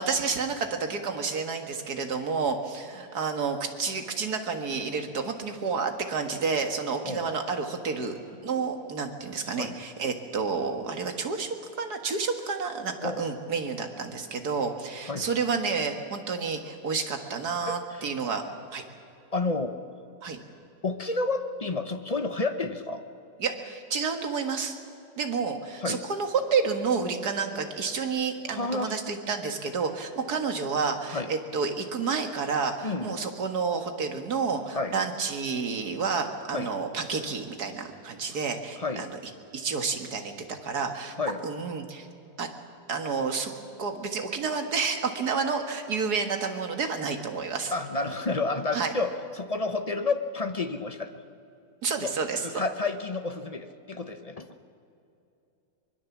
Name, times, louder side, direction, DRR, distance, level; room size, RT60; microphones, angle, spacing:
voice 1, 0.0-18.4 18.7-18.8 20.2-20.4 23.4-24.8 25.2-39.2 39.5-41.1 41.4-42.1 42.4-42.5 42.9-43.5 43.8-47.7 48.7-48.9 51.8-52.6, right 5 dB, 55° right, 5 dB, 2.2 m, -30 dB
voice 2, 17.7-18.1 19.3-19.8 20.8-23.0 25.8-26.0 28.5-28.9 31.1-31.3 32.8-33.2 34.7-34.9 36.5-36.7 38.8-39.0 41.2-41.4 47.7-51.1 52.0-52.1 52.4-54.5, left 3 dB, 40° left, 8 dB, 0.5 m, -30 dB
24.0 x 21.0 x 7.3 m, 2.7 s
omnidirectional pair, 2.0 m